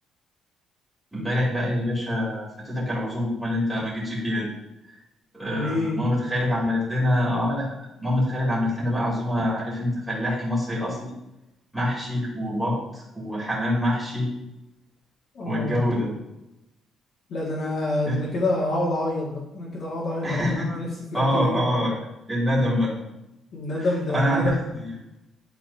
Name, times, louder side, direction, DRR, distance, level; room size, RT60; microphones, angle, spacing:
voice 1, 1.1-4.5 5.3-7.7 8.0-11.1 11.7-14.3 15.4-16.1 18.0-18.2 20.2-20.7 21.1-22.0 22.3-22.9 23.8-24.9, left 1 dB, 10° right, -7 dB, 2.8 m, -25 dB
voice 2, 5.5-6.1 15.3-15.9 17.3-21.7 23.5-24.6, left 1 dB, 55° left, -7 dB, 1.9 m, -27 dB
12.0 x 4.2 x 2.8 m, 0.91 s
cardioid pair, 140°, 0 cm